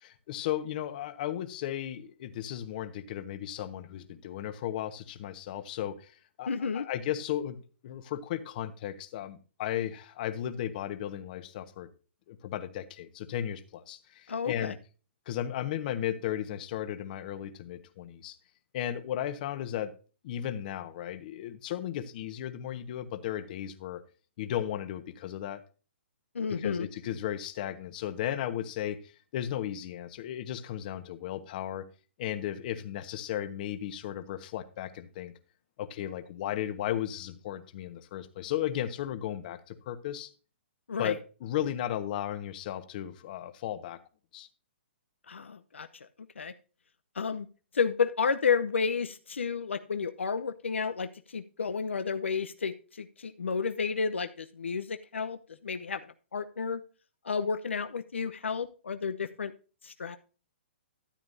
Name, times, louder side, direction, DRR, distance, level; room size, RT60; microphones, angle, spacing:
voice 1, 0.0-11.9 12.3-14.8 15.3-18.4 18.7-19.9 20.2-24.0 24.4-25.6 26.5-29.0 29.3-31.9 32.2-35.3 35.8-40.3 41.0-44.0 44.3-44.5, left 11 dB, 45° left, 11 dB, 1.2 m, -35 dB
voice 2, 6.5-6.9 14.3-14.7 26.3-26.9 40.9-41.1 45.3-45.9 46.4-46.5 47.2-47.5 47.7-56.0 56.3-56.8 57.2-59.5 59.8-60.2, left 5 dB, 85° left, 9 dB, 0.8 m, -31 dB
13.0 x 8.8 x 2.7 m, 0.35 s
hypercardioid pair, 135°, 6 cm